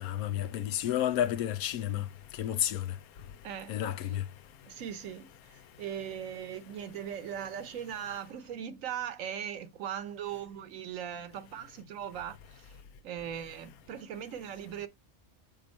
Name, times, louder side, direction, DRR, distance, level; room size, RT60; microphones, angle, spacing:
voice 1, 0.0-2.0 2.4-2.8 3.7-4.2, left 11 dB, 85° left, 1.1 m, -31 dB
voice 2, 3.4-3.8 4.1-4.2 4.7-12.8 13.0-14.9, right 9 dB, 70° right, 1.0 m, -39 dB
6.2 x 3.8 x 4.2 m
omnidirectional pair, 1.5 m